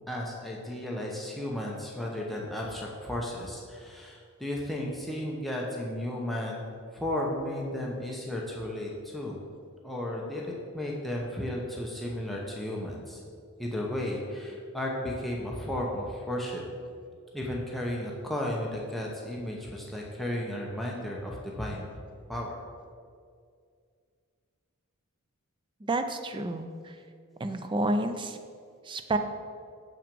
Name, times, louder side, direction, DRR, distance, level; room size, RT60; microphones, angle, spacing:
voice 1, 0.1-9.4 9.8-13.2 13.6-16.6 17.3-21.9 22.3-22.6, left 1 dB, ahead, -3 dB, 0.8 m, -34 dB
voice 2, 25.8-26.7 27.4-28.4 28.9-29.2, right 2 dB, 20° right, 8 dB, 0.4 m, -29 dB
7.3 x 5.9 x 5.2 m, 2.2 s
head